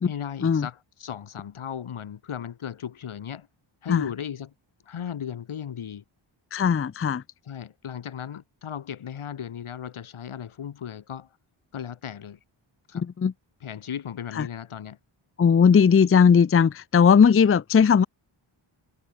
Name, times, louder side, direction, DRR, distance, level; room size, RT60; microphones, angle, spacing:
voice 1, 0.0-3.5 3.8-4.5 4.9-6.0 7.4-11.3 11.7-12.4 12.9-13.0 13.6-15.0, left 8 dB, 80° left, 2.8 m, -36 dB
voice 2, 6.5-7.2 12.9-13.3 14.4-14.5 15.4-18.1, left 6 dB, 30° left, 0.5 m, -18 dB
wide cardioid pair, 175°, 49 cm